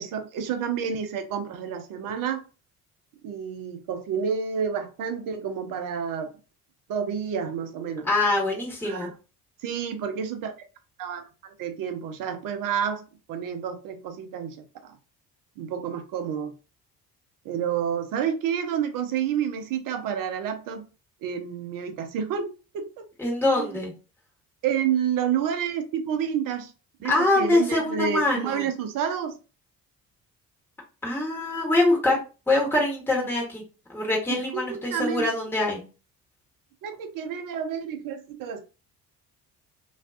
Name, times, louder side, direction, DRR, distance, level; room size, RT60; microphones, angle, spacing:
voice 1, 0.0-2.4 3.2-6.3 6.9-8.1 8.8-9.1 9.6-10.5 11.0-13.0 13.3-14.6 14.8-14.9 15.6-16.5 17.4-20.8 21.2-23.1 23.6-23.8 24.6-26.7 27.0-29.4 34.3-35.3 36.8-38.6, right 8 dB, 45° right, 0.6 m, -29 dB
voice 2, 8.0-9.1 23.2-23.9 27.0-28.7 31.0-32.2 32.5-33.6 33.9-35.9, left 2 dB, 5° left, 1.1 m, -24 dB
2.4 x 2.2 x 2.4 m
figure-of-eight pair, 50°, 46 cm